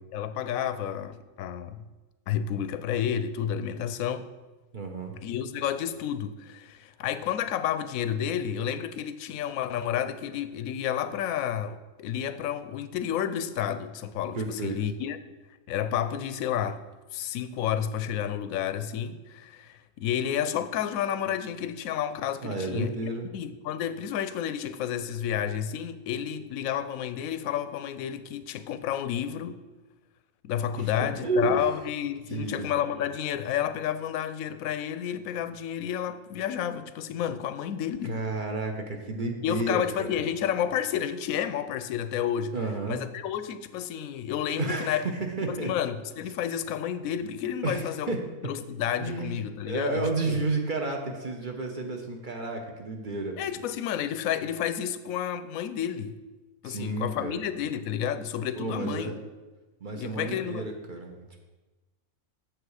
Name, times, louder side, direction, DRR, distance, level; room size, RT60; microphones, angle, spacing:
voice 1, 0.1-1.8 2.3-4.3 5.2-15.2 15.7-16.8 17.1-29.6 30.4-38.2 39.4-42.5 42.9-45.1 45.5-48.1 48.4-50.4 53.4-56.1 56.6-59.1 59.9-60.7, left 9 dB, 80° left, 12 dB, 1.0 m, -31 dB
voice 2, 4.7-5.1 14.3-14.8 22.4-23.3 30.8-30.9 31.2-31.6 32.3-32.7 38.1-40.1 42.5-43.0 44.6-45.7 47.6-48.2 49.0-53.4 56.6-57.4 58.5-59.1 59.8-61.4, right 3 dB, 40° right, 3 dB, 0.9 m, -31 dB
7.9 x 6.9 x 4.8 m, 1.2 s
omnidirectional pair, 1.5 m